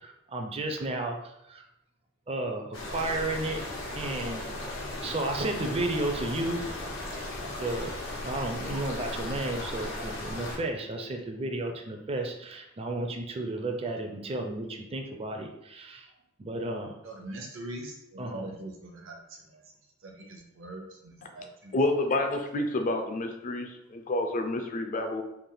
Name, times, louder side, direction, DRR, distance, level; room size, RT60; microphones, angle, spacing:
voice 1, 0.0-1.7 2.3-3.6 3.9-4.5 5.0-6.6 7.6-7.9 8.2-16.1 16.4-16.9 18.2-18.5, right 2 dB, 30° right, 4 dB, 0.5 m, -33 dB
sound 1, 2.7-10.6, left 1 dB, 85° left, 0.9 m, -36 dB
voice 2, 17.0-19.2 20.0-21.7, right 1 dB, 75° right, 1 dB, 0.8 m, -42 dB
voice 3, 21.7-25.2, left 2 dB, 40° left, 5 dB, 0.5 m, -29 dB
3.4 x 2.5 x 3.8 m, 0.85 s
head